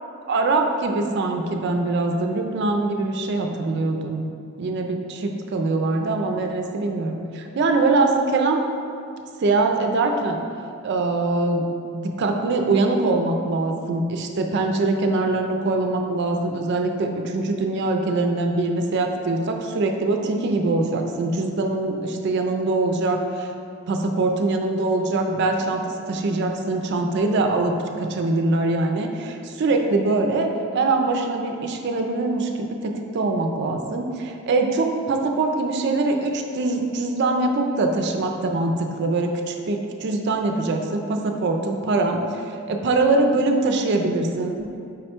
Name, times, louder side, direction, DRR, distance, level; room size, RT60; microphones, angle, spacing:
voice 1, 0.3-4.3 4.6-8.6 9.4-10.4 10.8-11.7 11.9-23.5 23.9-25.8 26.1-30.5 30.7-44.7, right 2 dB, 55° right, 3 dB, 0.3 m, -23 dB
5.0 x 2.2 x 4.3 m, 2.5 s
head